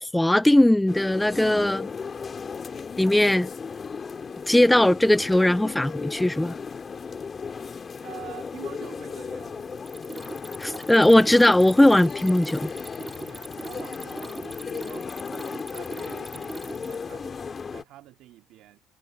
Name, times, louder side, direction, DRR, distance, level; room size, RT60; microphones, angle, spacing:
voice 1, 0.0-1.9 3.0-3.5 4.5-6.5 10.6-12.7, left 1 dB, 5° left, 0.4 m, -19 dB
sound 1, 0.9-17.8, left 5 dB, 35° left, 2.4 m, -36 dB
voice 2, 8.0-9.8 13.2-15.1 15.7-18.8, right 14 dB, 65° right, 2.5 m, -46 dB
Mechanisms, 9.7-17.1, right 2 dB, 15° right, 3.6 m, -40 dB
supercardioid pair, 80°, 0 cm